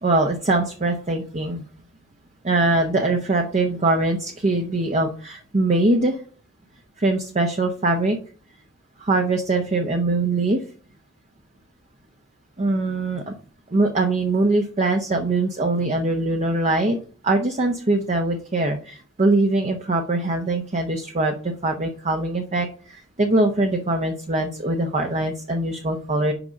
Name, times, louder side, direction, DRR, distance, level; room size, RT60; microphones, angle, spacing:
voice 1, 0.0-1.6 2.4-6.2 7.0-8.2 9.0-10.6 12.6-13.3 13.7-17.0 17.2-26.3, right 2 dB, 35° right, 3 dB, 0.8 m, -22 dB
6.0 x 5.2 x 6.4 m, 0.40 s
head